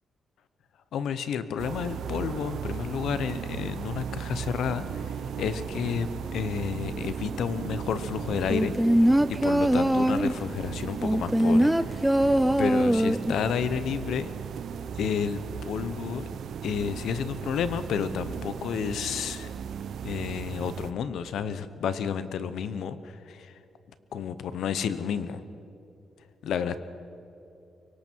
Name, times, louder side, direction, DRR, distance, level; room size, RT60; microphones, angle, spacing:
voice 1, 0.9-8.7 9.3-12.1 12.6-14.3 15.0-16.2 16.6-19.5 20.0-23.5 24.1-25.4 26.4-26.7, left 7 dB, 80° left, 12 dB, 1.0 m, -31 dB
sound 1, 1.6-20.9, right 7 dB, 65° right, 0.7 m, -36 dB
sound 2, 8.5-10.4 11.0-13.4 13.7-13.8, right 1 dB, 5° right, 0.4 m, -22 dB
24.5 x 24.0 x 4.7 m, 2.8 s
wide cardioid pair, 155°, 0 cm